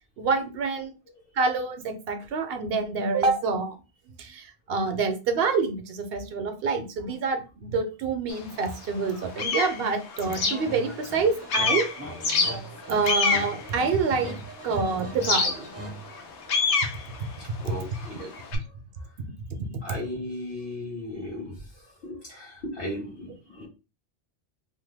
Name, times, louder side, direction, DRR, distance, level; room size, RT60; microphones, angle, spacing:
voice 1, 0.2-0.9 1.3-3.8 4.2-11.9 12.9-15.7 18.2-18.6 19.7-19.8, right 4 dB, 65° right, 7 dB, 0.8 m, -27 dB
sound 1, 8.3-8.4 8.9-11.2 11.5-14.6 15.2-18.6, left 4 dB, 80° left, 1.0 m, -27 dB
sound 2, 10.2-16.7, right 1 dB, 20° right, 0.5 m, -40 dB
voice 2, 17.2-19.2 19.8-23.7, left 1 dB, 55° left, -7 dB, 1.3 m, -38 dB
2.8 x 2.2 x 3.3 m, 0.30 s
omnidirectional pair, 1.1 m